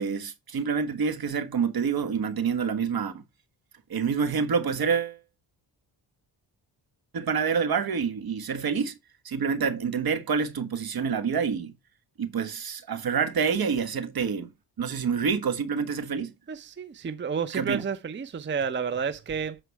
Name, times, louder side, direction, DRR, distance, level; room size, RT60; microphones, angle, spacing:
voice 1, 0.0-3.2 3.9-5.2 7.1-9.0 9.2-11.7 12.2-14.5 14.8-16.3 17.5-17.8, right 6 dB, 55° right, 1.4 m, -27 dB
voice 2, 16.5-19.6, right 6 dB, 25° right, 0.6 m, -31 dB
8.3 x 4.5 x 4.5 m
cardioid pair, 80°, 43 cm